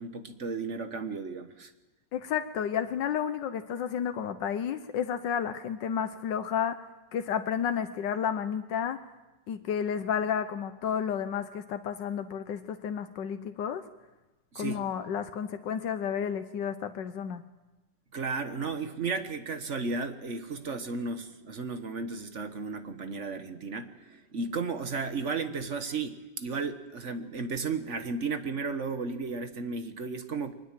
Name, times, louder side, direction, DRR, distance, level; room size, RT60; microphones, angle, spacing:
voice 1, 0.0-1.7 14.5-14.8 18.1-30.5, right 4 dB, 45° right, 9 dB, 1.4 m, -34 dB
voice 2, 2.1-6.8 7.1-9.0 9.5-13.8 14.5-17.4, left 8 dB, 90° left, 9 dB, 1.6 m, -31 dB
22.5 x 20.0 x 7.5 m, 1.1 s
omnidirectional pair, 1.9 m